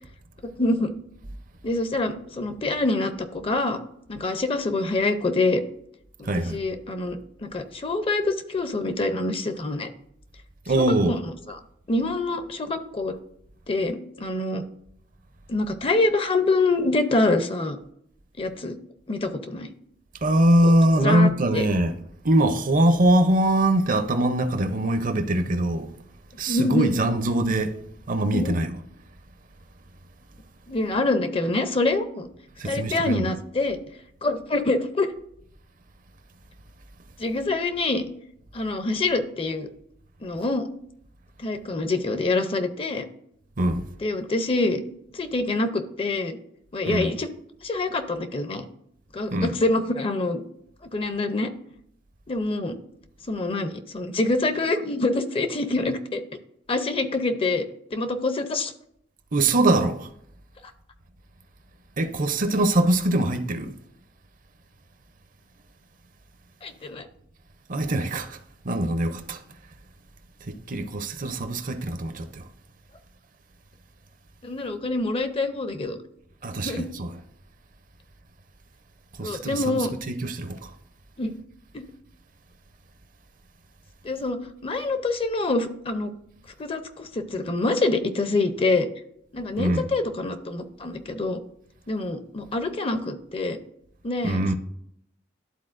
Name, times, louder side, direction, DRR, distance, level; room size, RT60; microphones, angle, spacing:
voice 1, 0.6-0.9 1.6-3.8 4.1-5.6 6.2-9.9 11.1-11.2 11.5-11.6 11.9-13.2 13.7-14.6 15.5-17.8 18.4-18.7 19.1-19.7 20.6-21.7 26.5-27.0 28.3-28.6 30.7-32.3 32.6-33.8 34.2-35.1 37.2-38.0 38.5-39.7 40.2-40.7 41.4-43.1 44.0-44.8 45.1-46.4 46.7-47.3 47.6-48.7 49.1-50.4 50.9-51.5 52.3-52.8 53.3-56.2 56.7-57.6 57.9-58.7 66.6-67.1 74.4-76.0 76.6-76.9 79.2-79.9 81.2-81.3 81.7-81.8 84.0-86.1 86.6-88.9 89.3-91.4 91.9-93.6 94.0-94.5, left 2 dB, 30° left, 0.6 m, -26 dB
voice 2, 6.2-6.6 10.7-11.2 20.2-21.9 22.2-25.9 26.4-27.8 28.1-28.8 32.6-33.3 43.6-43.9 46.9-47.1 49.3-49.5 59.3-60.1 62.0-63.7 67.7-68.4 68.6-69.4 70.4-72.5 76.4-77.1 79.2-80.7 89.6-89.9 94.2-94.5, right 1 dB, 45° right, 0.6 m, -22 dB
12.0 x 4.0 x 2.5 m
head